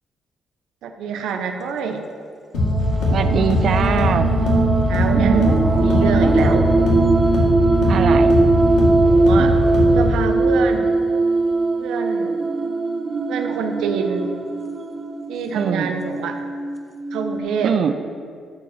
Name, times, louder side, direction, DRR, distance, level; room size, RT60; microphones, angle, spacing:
voice 1, 0.8-2.0 4.9-6.7 9.0-9.5 9.9-10.9 11.8-12.4 13.3-14.3 15.3-16.4 17.1-17.7, right 5 dB, 85° right, 5 dB, 0.8 m, -26 dB
sound 1, 2.5-10.2, left 1 dB, 85° left, 2.2 m, -20 dB
sound 2, 2.5-17.4, right 3 dB, 30° right, 0.9 m, -20 dB
voice 2, 3.1-4.3 5.1-5.5 5.8-6.1 7.9-8.4 9.3-9.6 15.5-15.9 17.6-17.9, right 7 dB, 60° right, 9 dB, 0.5 m, -22 dB
13.0 x 5.0 x 5.7 m, 2.3 s
cardioid pair, 90°, 0 cm